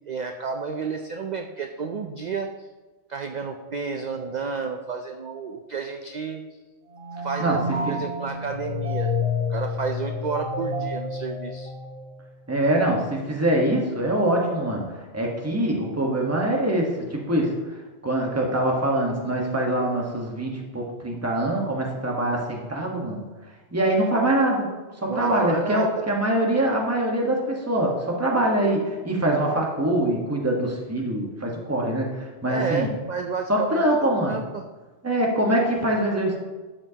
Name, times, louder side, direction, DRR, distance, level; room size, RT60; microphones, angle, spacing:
voice 1, 0.1-2.7 3.1-6.4 7.2-7.6 7.9-9.1 9.5-11.7 25.1-25.9 32.5-34.6, right 5 dB, 50° right, 5 dB, 0.5 m, -31 dB
sound 1, 6.9-12.4, left 3 dB, 75° right, 1.8 m, -29 dB
voice 2, 12.5-14.9 15.1-17.5 18.0-23.2 23.7-24.7 25.0-32.9 33.5-34.4 35.0-36.4, right 1 dB, 15° right, -1 dB, 1.2 m, -24 dB
12.0 x 7.5 x 2.9 m, 1.3 s
omnidirectional pair, 1.2 m